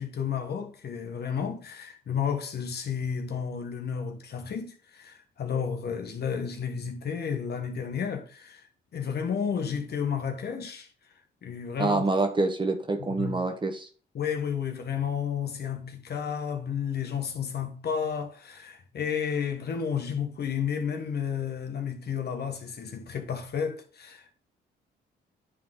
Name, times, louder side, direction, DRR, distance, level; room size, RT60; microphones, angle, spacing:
voice 1, 0.0-10.9 11.4-12.0 13.1-13.4 14.1-24.3, left 7 dB, 55° left, 1.4 m, -32 dB
voice 2, 11.8-13.9, right 2 dB, 25° right, 1.3 m, -26 dB
10.0 x 3.8 x 3.8 m
cardioid pair, 90°, 20 cm